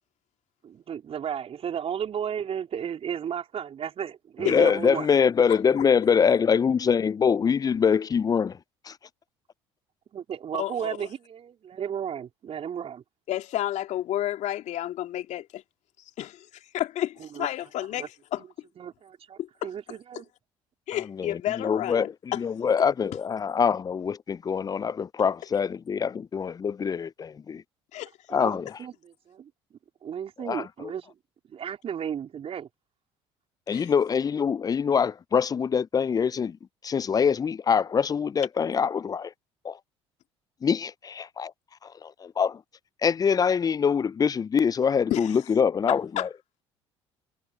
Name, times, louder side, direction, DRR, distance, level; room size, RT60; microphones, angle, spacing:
voice 1, 0.6-5.1 10.1-13.0 17.2-17.5 18.0-18.1 18.8-20.2 28.3-29.5 30.0-31.1 31.5-32.7, right 8 dB, 45° right, 4.2 m, -34 dB
voice 2, 4.4-8.6 8.8-9.0 21.2-27.6 28.3-28.8 30.4-30.9 33.7-36.6 36.8-39.3 39.6-39.8 40.6-41.5 41.8-42.6 43.0-46.3, left 6 dB, 25° left, 0.5 m, -24 dB
voice 3, 5.5-5.8 10.6-11.1 13.3-15.6 16.2-18.0 18.3-18.4 19.4-19.7 20.9-22.4 27.9-28.1 33.7-33.9 45.1-45.3 45.9-46.3, left 13 dB, 55° left, 2.5 m, -31 dB
hypercardioid pair, 60°, 14 cm